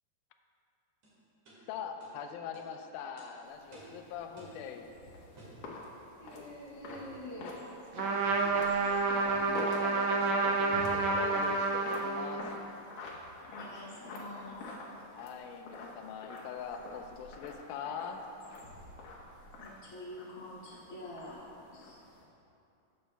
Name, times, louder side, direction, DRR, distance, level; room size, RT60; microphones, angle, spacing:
sound 1, 1.0-1.1 1.5-1.6 2.0-2.1 2.5-2.7 3.2-3.3 3.7-4.0 4.4-4.6 5.4-5.6 6.9-7.1 8.2-8.5 9.3-9.5, right 2 dB, 55° right, 3.1 m, -53 dB
voice 1, 1.7-4.9 8.4-12.6 15.1-18.2, left 7 dB, 80° left, 5 dB, 1.8 m, -43 dB
sound 2, 3.4-22.2, left 2 dB, 65° left, 1.8 m, -47 dB
voice 2, 6.2-7.6 13.5-14.7 19.6-22.0, left 1 dB, 20° left, -9 dB, 0.6 m, -46 dB
Trumpet, 7.9-12.5, right 3 dB, 85° right, 1.6 m, -29 dB
13.5 x 8.1 x 2.2 m, 2.7 s
omnidirectional pair, 4.1 m